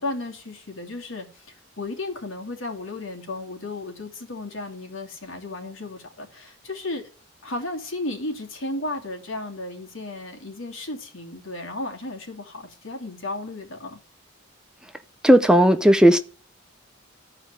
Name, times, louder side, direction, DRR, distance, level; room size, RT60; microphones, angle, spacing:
voice 1, 0.0-7.1 7.4-14.0, left 2 dB, 75° left, 2.9 m, -34 dB
voice 2, 15.2-16.2, equal, 5° right, 0.6 m, -14 dB
13.5 x 4.9 x 9.0 m
head